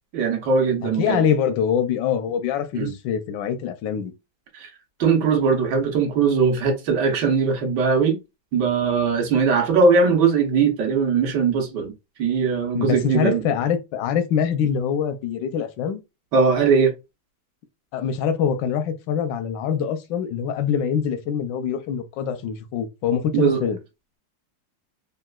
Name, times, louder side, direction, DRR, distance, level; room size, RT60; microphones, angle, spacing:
voice 1, 0.1-1.2 2.7-2.9 4.5-4.7 5.0-8.2 8.5-11.9 12.2-13.4 16.3-16.9 23.3-23.6, right 5 dB, 75° right, 1.5 m, -20 dB
voice 2, 0.8-4.1 12.7-16.0 17.9-23.8, left 8 dB, 85° left, 1.2 m, -24 dB
3.9 x 2.3 x 2.2 m
omnidirectional pair, 1.9 m